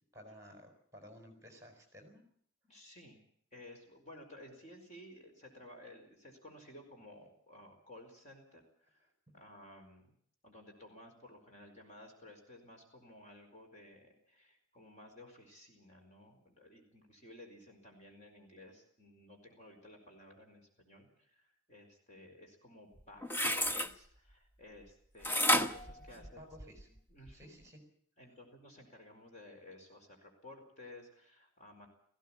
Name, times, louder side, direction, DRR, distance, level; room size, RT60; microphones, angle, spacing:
voice 1, 0.1-2.2 26.1-26.9 27.3-27.8, equal, 15° right, 5 dB, 4.6 m, -55 dB
voice 2, 2.6-3.2 3.5-10.1 10.4-26.4 27.1-27.6 28.2-31.9, left 1 dB, 35° left, 2 dB, 4.7 m, -55 dB
sound 1, 23.0-23.9 25.2-26.8 27.3-27.4, equal, 10° left, 0.8 m, -31 dB
18.5 x 16.0 x 8.8 m, 0.63 s
head